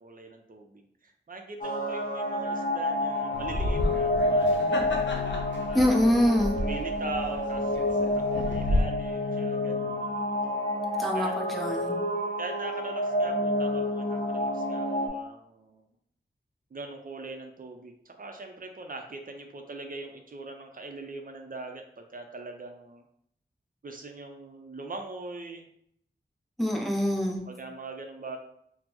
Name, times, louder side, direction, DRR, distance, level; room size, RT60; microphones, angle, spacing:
voice 1, 0.0-4.9 5.7-10.0 11.1-11.4 12.4-15.8 16.7-23.0 23.8-25.7 27.5-28.4, right 3 dB, 50° right, 4 dB, 0.5 m, -41 dB
sound 1, 1.6-15.1, left 1 dB, 50° left, 0.7 m, -29 dB
sound 2, 3.3-8.8, left 1 dB, 85° left, 0.5 m, -32 dB
voice 2, 5.7-6.6 11.0-12.0 26.6-27.5, equal, ahead, 0 dB, 0.6 m, -25 dB
4.2 x 2.0 x 2.8 m, 0.71 s
wide cardioid pair, 70°, 18 cm